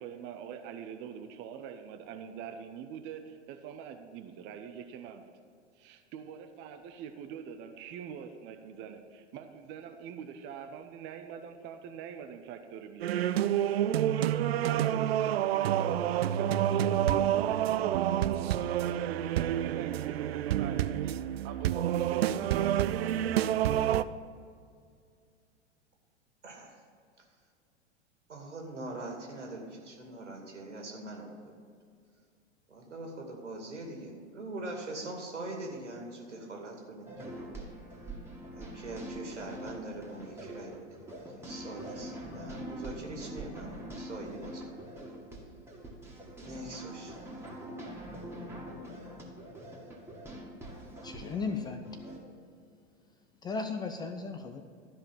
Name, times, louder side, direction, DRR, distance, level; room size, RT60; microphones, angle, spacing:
voice 1, 0.0-5.3 5.8-13.3 14.6-22.5 22.8-23.3, right 8 dB, 30° right, 6 dB, 0.7 m, -44 dB
sound 1, 13.0-24.0, right 11 dB, 60° right, 0.5 m, -28 dB
voice 2, 26.4-26.8 28.3-31.6 32.7-37.4 38.6-41.0 41.4-44.7 46.4-47.1, right 2 dB, 80° right, 1 dB, 2.4 m, -42 dB
sound 2, 37.1-52.2, right 1 dB, 5° right, 1.9 m, -44 dB
voice 3, 51.0-51.9 53.4-54.6, left 4 dB, 10° left, 7 dB, 0.4 m, -35 dB
12.5 x 5.1 x 7.3 m, 2.2 s
figure-of-eight pair, 95°, 35 cm